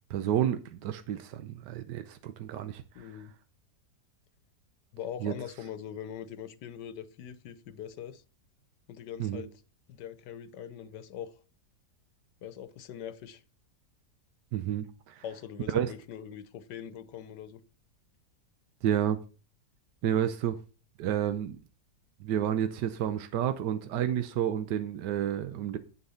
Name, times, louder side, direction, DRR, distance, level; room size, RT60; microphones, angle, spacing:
voice 1, 0.1-3.1 5.2-5.3 9.2-9.5 14.5-15.2 15.7-15.9 18.8-19.2 20.0-20.6 21.0-21.6 22.2-25.8, right 10 dB, 85° right, 1.4 m, -30 dB
voice 2, 2.9-3.3 4.9-8.2 8.9-9.6 9.9-11.4 12.4-13.4 15.2-17.6, left 9 dB, 85° left, 1.5 m, -42 dB
9.1 x 7.0 x 5.6 m
omnidirectional pair, 1.8 m